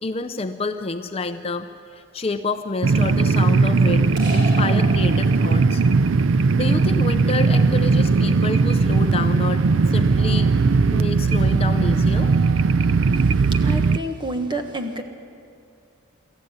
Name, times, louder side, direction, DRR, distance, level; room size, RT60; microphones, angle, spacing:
voice 1, 0.0-5.8 6.6-10.5 10.9-12.5, left 3 dB, 30° left, 7 dB, 0.6 m, -28 dB
sound 1, 2.8-14.0, right 4 dB, 75° right, 0.5 m, -18 dB
sound 2, 4.2-5.8, left 1 dB, 50° right, 5.1 m, -34 dB
voice 2, 13.6-15.0, right 1 dB, 25° right, 5 dB, 1.4 m, -28 dB
23.5 x 14.0 x 9.6 m, 2.6 s
head